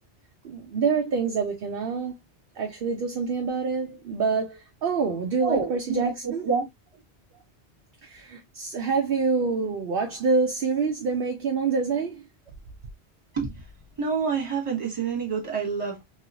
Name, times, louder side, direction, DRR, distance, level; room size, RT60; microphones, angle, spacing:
voice 1, 0.4-2.1 2.6-6.4 8.0-12.2, right 4 dB, 60° right, 0.8 m, -26 dB
voice 2, 5.4-6.6 13.3-13.7 14.0-16.0, right 5 dB, 30° right, 1.5 m, -27 dB
3.0 x 3.0 x 2.4 m
omnidirectional pair, 1.2 m